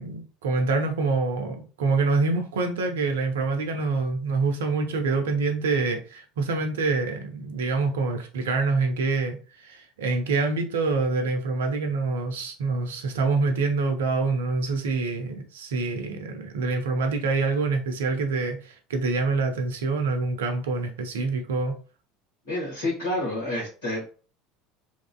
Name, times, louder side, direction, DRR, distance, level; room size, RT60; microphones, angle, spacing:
voice 1, 0.0-21.8, right 3 dB, 70° right, 0.5 m, -26 dB
voice 2, 22.5-24.0, left 1 dB, 70° left, 1.3 m, -29 dB
2.9 x 2.5 x 2.2 m
figure-of-eight pair, 70°, 0 cm